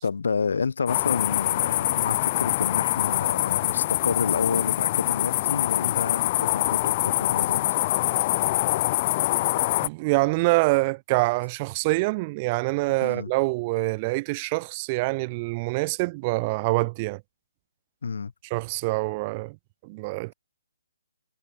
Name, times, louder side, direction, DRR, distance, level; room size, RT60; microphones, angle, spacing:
voice 1, 0.0-7.6 13.0-13.3 18.0-18.3, left 5 dB, 70° left, 3.5 m, -29 dB
sound 1, 0.9-9.9, left 17 dB, 25° left, 0.4 m, -24 dB
voice 2, 9.8-17.2 18.5-19.6 19.8-20.3, right 25 dB, 20° right, 1.3 m, -25 dB
hypercardioid pair, 170°, 0 cm